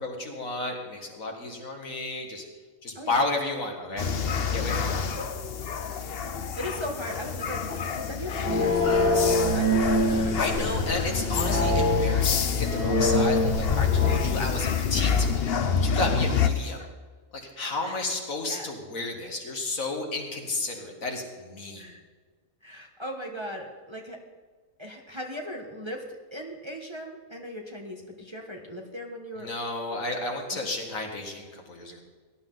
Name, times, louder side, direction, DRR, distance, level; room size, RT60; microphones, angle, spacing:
voice 1, 0.0-2.4 2.8-4.1 4.5-5.1 10.1-16.8 17.3-21.9 29.4-32.0, left 2 dB, 65° left, 2 dB, 2.3 m, -32 dB
sound 1, 4.0-16.5, left 6 dB, 50° left, 0.9 m, -27 dB
voice 2, 6.6-7.6 7.9-10.7 16.1-16.2 17.8-18.0 18.5-18.7 21.8-22.0 22.6-24.2 24.8-26.0 26.3-29.5 29.9-30.0 30.5-30.7, equal, 20° right, 1 dB, 1.3 m, -38 dB
sound 2, 8.4-14.1, equal, 40° right, 4.9 m, -25 dB
17.5 x 11.5 x 4.0 m, 1.4 s
omnidirectional pair, 1.5 m